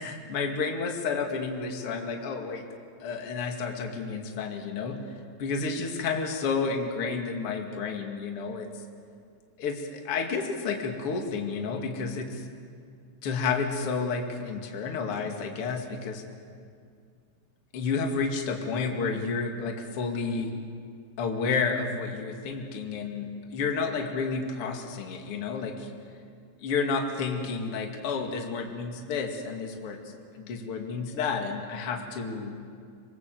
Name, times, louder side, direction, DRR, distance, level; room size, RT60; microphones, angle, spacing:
voice 1, 0.0-2.6 3.0-8.7 9.6-12.5 13.2-16.2 17.7-20.5 21.2-25.9 26.6-30.0 30.3-32.5, left 4 dB, 40° left, 2 dB, 2.1 m, -31 dB
26.0 x 24.0 x 7.7 m, 2.3 s
omnidirectional pair, 5.8 m